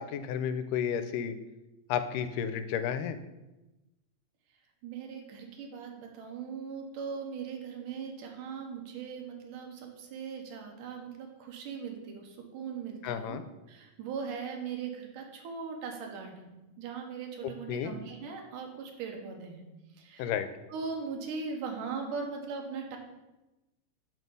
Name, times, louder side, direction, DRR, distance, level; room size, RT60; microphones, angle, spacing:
voice 1, 0.0-1.4 1.9-3.2 13.0-13.4 17.4-17.9 20.2-20.5, left 8 dB, 85° left, 10 dB, 2.1 m, -32 dB
voice 2, 4.8-13.4 13.7-16.5 16.8-19.7 20.0-20.3 20.7-23.0, right 5 dB, 80° right, 2 dB, 2.6 m, -39 dB
6.3 x 6.3 x 5.3 m, 1.0 s
omnidirectional pair, 3.7 m